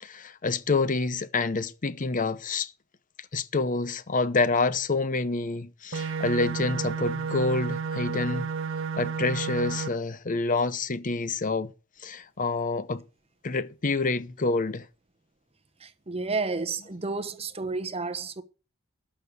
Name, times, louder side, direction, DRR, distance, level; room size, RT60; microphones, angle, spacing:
voice 1, 0.0-2.7 3.3-8.5 9.0-11.7 12.0-13.0 13.4-14.9, left 3 dB, 40° left, 0.7 m, -27 dB
sound 1, 5.9-9.9, right 5 dB, 60° right, 0.7 m, -31 dB
voice 2, 15.8-18.4, right 3 dB, 30° right, 0.9 m, -31 dB
12.5 x 6.5 x 8.0 m
head